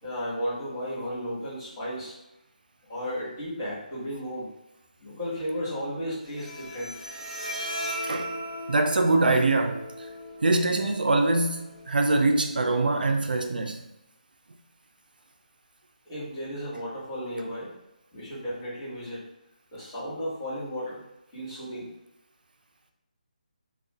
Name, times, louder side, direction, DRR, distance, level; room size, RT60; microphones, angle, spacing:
voice 1, 0.0-2.1 2.9-4.5 5.0-6.9 16.1-17.7 18.1-19.2 19.7-21.0 21.3-21.9, equal, 20° left, 1.5 m, -34 dB
Bowed string instrument, 6.2-13.2, equal, 10° right, 0.9 m, -38 dB
voice 2, 8.7-9.8 10.4-13.8, right 2 dB, 80° right, 0.4 m, -23 dB
2.4 x 2.3 x 3.5 m
figure-of-eight pair, 160°, 5 cm